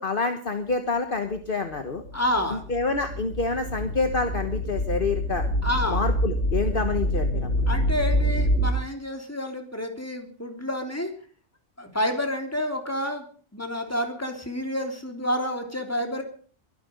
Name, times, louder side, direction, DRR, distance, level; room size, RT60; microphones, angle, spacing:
voice 1, 0.0-2.0 2.5-5.4 5.9-7.5, left 4 dB, 45° left, 7 dB, 1.5 m, -27 dB
sound 1, 1.8-8.7, equal, 75° left, 3.6 m, -26 dB
voice 2, 2.1-2.6 5.6-6.0 7.7-11.1 11.8-13.2 13.5-16.2, left 1 dB, 10° left, 4 dB, 3.3 m, -29 dB
23.0 x 10.5 x 5.3 m, 0.43 s
omnidirectional pair, 1.3 m